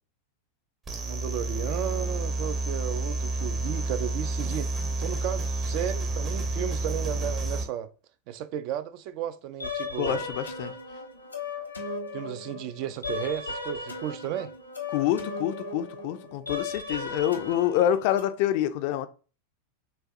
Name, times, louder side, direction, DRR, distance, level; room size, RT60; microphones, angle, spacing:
sound 1, 0.9-7.6, right 2 dB, 25° right, 0.8 m, -30 dB
voice 1, 1.0-4.7 5.0-7.9 8.3-10.3 12.1-14.5, right 10 dB, 45° right, 0.4 m, -34 dB
sound 2, 9.6-18.2, left 3 dB, 85° left, 0.9 m, -36 dB
voice 2, 10.0-10.7 14.9-19.1, left 11 dB, 45° left, 0.4 m, -27 dB
6.4 x 2.3 x 2.4 m
figure-of-eight pair, 90°, 0 cm